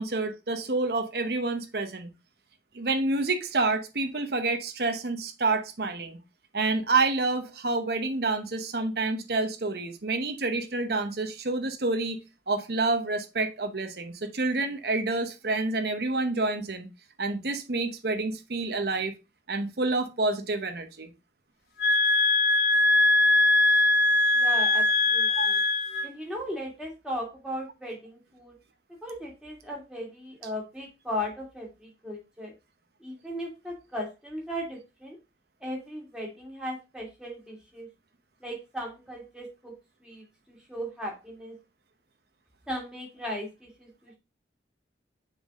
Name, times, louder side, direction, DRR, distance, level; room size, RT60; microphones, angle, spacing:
voice 1, 0.0-2.1 2.7-6.2 6.5-12.2 12.5-16.9 17.2-19.1 19.5-21.1 25.4-25.5, right 3 dB, 60° right, 0.9 m, -28 dB
sound 1, 21.8-26.1, left 2 dB, 55° left, 1.4 m, -21 dB
voice 2, 24.3-25.6 26.0-28.5 29.0-32.5 33.0-35.2 35.6-37.9 38.4-39.7 40.0-41.6 42.7-44.2, equal, 5° right, 2.2 m, -37 dB
6.8 x 4.1 x 3.6 m
head